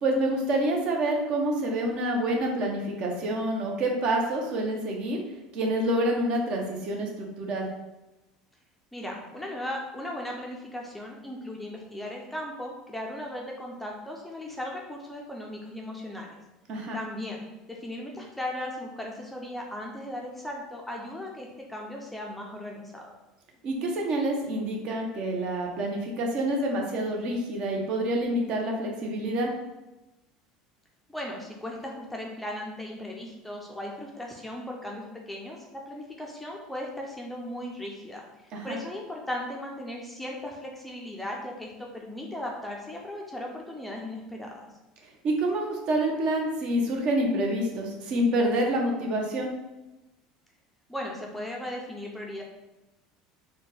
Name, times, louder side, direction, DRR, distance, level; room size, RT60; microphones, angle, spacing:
voice 1, 0.0-5.2 5.5-7.7 16.7-17.0 23.6-29.5 38.5-38.8 45.2-49.5, right 1 dB, 50° right, 1 dB, 0.8 m, -27 dB
voice 2, 8.9-16.3 16.9-23.1 31.1-44.7 50.9-52.4, left 1 dB, 5° left, -1 dB, 0.5 m, -37 dB
4.2 x 2.2 x 3.3 m, 1.0 s
cardioid pair, 135°, 2 cm